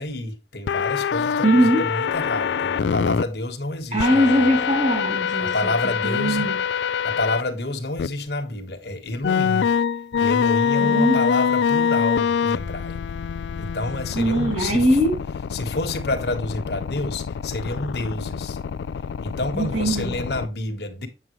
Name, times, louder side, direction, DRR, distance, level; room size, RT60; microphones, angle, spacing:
voice 1, 0.0-4.6 5.4-6.5 7.0-9.7 10.2-13.0 13.6-14.9 15.5-18.6 19.2-21.1, left 2 dB, 65° left, 1.4 m, -29 dB
sound 1, 0.7-3.2 4.0-7.4 8.0-8.1 9.2-20.5, left 7 dB, 80° left, 0.3 m, -25 dB
voice 2, 1.4-1.9 3.9-5.5 6.0-6.6 10.8-11.2 14.1-15.2 19.5-20.1, equal, 40° right, 2.9 m, -20 dB
8.0 x 7.3 x 3.1 m
head